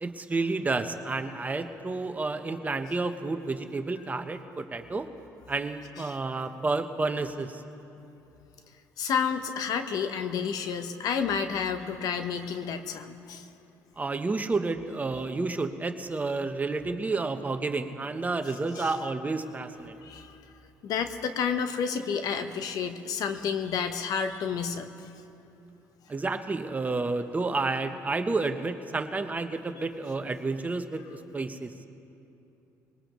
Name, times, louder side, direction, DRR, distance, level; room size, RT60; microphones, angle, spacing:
voice 1, 0.0-5.1 5.5-7.6 14.0-20.0 26.1-31.7, right 3 dB, 25° right, 8 dB, 0.9 m, -30 dB
voice 2, 9.0-13.5 18.5-18.9 20.0-20.4 20.8-24.9, left 6 dB, 70° left, 8 dB, 0.9 m, -30 dB
21.5 x 19.0 x 3.1 m, 2.8 s
supercardioid pair, 80°, 7 cm